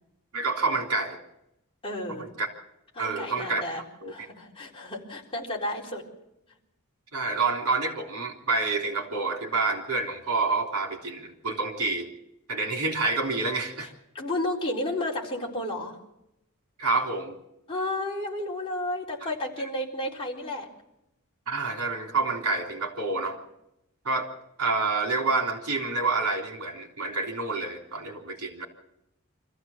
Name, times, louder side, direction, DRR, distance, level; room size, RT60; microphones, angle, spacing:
voice 1, 0.3-1.2 2.1-2.5 3.0-4.1 7.1-12.1 12.5-13.9 16.8-17.4 19.2-19.3 21.5-23.4 24.0-24.3 24.6-28.7, right 3 dB, 75° right, 2 dB, 3.5 m, -28 dB
voice 2, 1.8-2.3 2.9-3.8 4.1-6.0 13.8-13.9 14.1-16.0 17.7-20.7, left 1 dB, 25° left, -3 dB, 4.0 m, -32 dB
25.5 x 15.0 x 7.3 m, 0.85 s
head